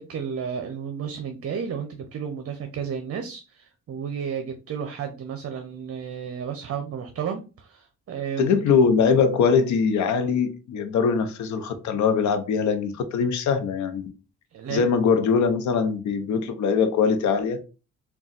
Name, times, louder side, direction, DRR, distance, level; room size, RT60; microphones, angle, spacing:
voice 1, 0.0-8.6 14.5-14.9, right 7 dB, 50° right, 0.6 m, -32 dB
voice 2, 8.4-14.1 14.7-17.6, left 5 dB, 70° left, 0.8 m, -22 dB
3.6 x 2.3 x 4.1 m
cardioid pair, 90°, 30 cm